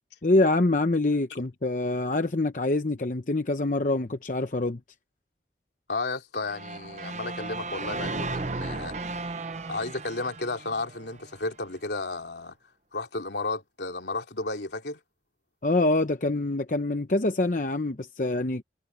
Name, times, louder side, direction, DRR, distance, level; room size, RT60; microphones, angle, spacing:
voice 1, 0.2-4.8 15.6-18.6, left 2 dB, 45° left, 0.8 m, -25 dB
voice 2, 5.9-8.9 9.7-12.5 12.9-15.0, left 3 dB, 80° left, 2.9 m, -33 dB
sound 1, 6.5-11.5, right 3 dB, 40° right, 0.7 m, -35 dB
head